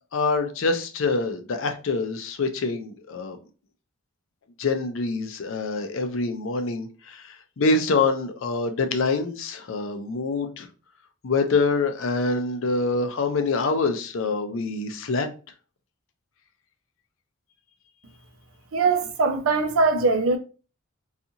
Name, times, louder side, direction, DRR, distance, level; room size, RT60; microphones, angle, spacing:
voice 1, 0.1-3.4 4.6-10.7 11.2-15.3, left 3 dB, 60° left, 0.4 m, -25 dB
voice 2, 18.7-20.4, right 4 dB, 75° right, 0.5 m, -21 dB
2.6 x 2.4 x 2.7 m
head